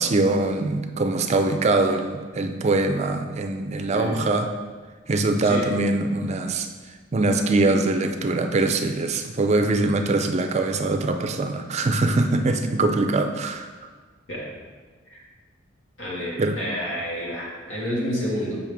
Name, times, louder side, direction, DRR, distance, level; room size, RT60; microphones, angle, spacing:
voice 1, 0.0-4.5 5.1-6.7 7.1-13.7 16.4-16.6, right 2 dB, 35° right, 6 dB, 0.4 m, -22 dB
voice 2, 3.9-4.2 5.4-5.7 14.3-14.5 15.1-15.2 16.0-18.6, equal, 80° left, -5 dB, 2.0 m, -29 dB
7.2 x 5.4 x 3.5 m, 1.5 s
head